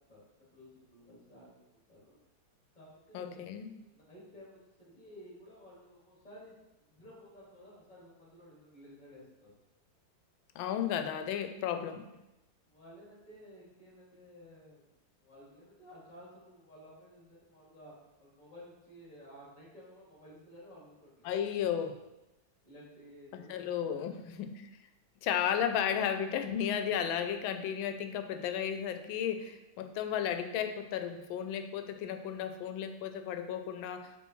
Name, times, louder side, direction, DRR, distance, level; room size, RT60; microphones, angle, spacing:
voice 1, 0.1-2.2 2.7-3.5 3.8-9.5 12.6-14.8 15.2-22.1 22.6-24.3 25.5-25.6, equal, 25° left, -7 dB, 2.2 m, -54 dB
voice 2, 3.1-3.7 10.5-12.1 21.2-22.0 23.3-24.7 25.2-34.1, left 9 dB, 90° left, 8 dB, 1.4 m, -34 dB
6.8 x 4.6 x 3.1 m, 0.95 s
omnidirectional pair, 2.1 m